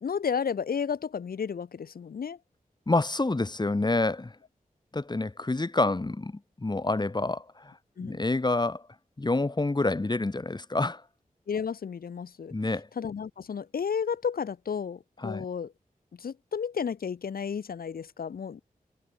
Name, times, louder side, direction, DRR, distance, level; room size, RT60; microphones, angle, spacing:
voice 1, 0.0-2.4 8.0-8.2 11.5-12.5 13.0-15.7 16.1-18.6, left 6 dB, 90° left, 0.9 m, -32 dB
voice 2, 2.9-4.4 4.9-7.7 8.0-8.8 9.2-11.0 12.5-12.9 15.2-15.4, left 2 dB, 30° left, 2.3 m, -28 dB
wide cardioid pair, 95°, 15 cm